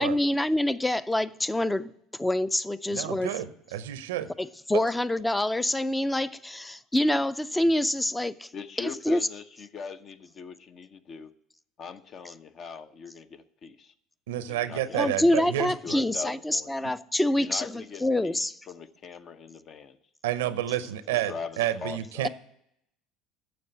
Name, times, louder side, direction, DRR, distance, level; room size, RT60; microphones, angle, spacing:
voice 1, 0.0-1.9 2.2-3.3 4.4-8.5 8.8-9.3 14.9-18.5, left 1 dB, 10° left, 0.5 m, -26 dB
voice 2, 2.9-4.3 4.7-4.8 14.3-15.7 20.2-22.3, right 12 dB, 85° right, 0.6 m, -30 dB
voice 3, 8.5-11.3 11.8-13.9 14.5-16.7 17.4-20.0 20.7-22.3, left 5 dB, 45° left, 0.8 m, -41 dB
9.5 x 6.8 x 8.3 m
hypercardioid pair, 80°, 0 cm